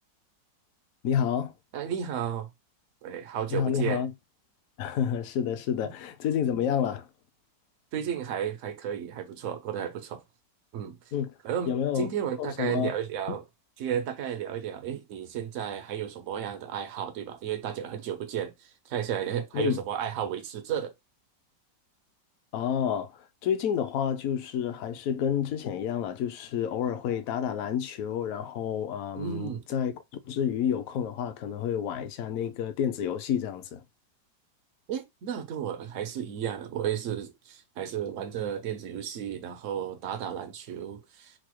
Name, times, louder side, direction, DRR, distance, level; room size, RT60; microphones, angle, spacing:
voice 1, 1.0-1.5 3.5-4.1 4.8-7.1 11.1-11.3 11.7-12.1 12.4-12.9 13.3-13.4 19.5-19.8 22.5-33.8, left 8 dB, 65° left, 0.8 m, -29 dB
voice 2, 1.7-2.5 3.0-4.0 7.9-10.2 10.7-11.0 11.4-13.4 13.8-20.9 29.2-29.6 34.9-41.3, right 9 dB, 80° right, 0.7 m, -33 dB
4.5 x 2.0 x 3.0 m
omnidirectional pair, 2.0 m